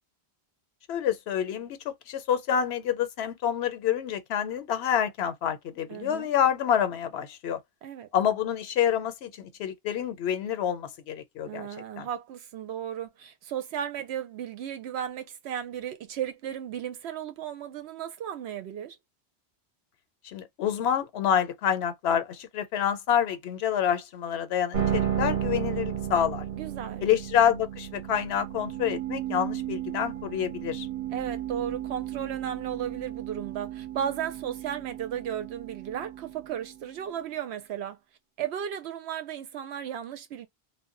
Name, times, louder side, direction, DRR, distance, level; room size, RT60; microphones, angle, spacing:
voice 1, 0.9-7.6 8.1-11.7 12.0-12.1 20.2-26.4 27.0-30.9, left 9 dB, 75° left, 0.8 m, -27 dB
voice 2, 5.9-6.3 7.8-8.1 11.5-19.0 26.5-27.0 31.1-38.0 38.4-40.5, right 9 dB, 80° right, 0.9 m, -35 dB
sound 1, 24.7-37.0, right 10 dB, 50° right, 0.8 m, -34 dB
2.1 x 2.1 x 3.6 m
omnidirectional pair, 1.1 m